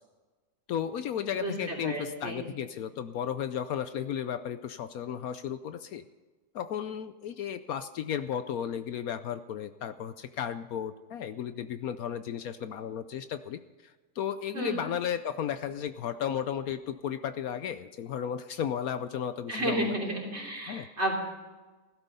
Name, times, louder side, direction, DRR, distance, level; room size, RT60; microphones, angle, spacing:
voice 1, 0.7-6.0 6.5-13.6 14.2-19.9 20.7-20.9, left 9 dB, 70° left, 11 dB, 1.0 m, -34 dB
voice 2, 1.4-2.4 14.5-14.7 19.5-21.2, right 1 dB, 40° right, -1 dB, 3.6 m, -32 dB
16.0 x 12.5 x 5.4 m, 1.3 s
omnidirectional pair, 1.7 m